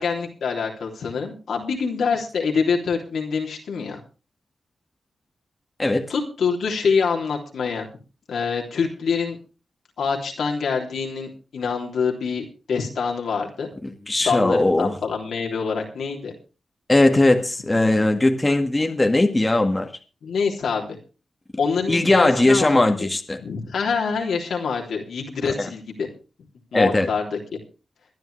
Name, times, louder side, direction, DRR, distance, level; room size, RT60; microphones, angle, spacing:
voice 1, 0.0-4.0 6.1-7.9 8.3-9.4 10.0-13.7 14.2-16.3 20.2-21.0 21.6-23.1 23.4-26.1 26.7-27.4, left 5 dB, 85° left, 3.3 m, -25 dB
voice 2, 13.8-14.9 16.9-19.9 21.9-23.4 25.6-25.7 26.7-27.1, left 2 dB, 20° left, 2.0 m, -19 dB
23.0 x 10.5 x 3.4 m
cardioid pair, 75°, 0 cm